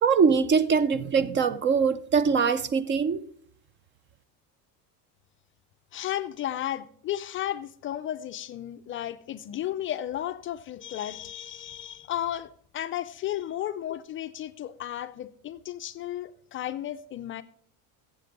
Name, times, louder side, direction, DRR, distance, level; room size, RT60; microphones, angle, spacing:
voice 1, 0.0-3.2, right 6 dB, 30° right, 0.4 m, -22 dB
voice 2, 5.9-17.4, left 12 dB, 35° left, 0.4 m, -34 dB
15.0 x 7.6 x 5.2 m
cardioid pair, 145°, 38 cm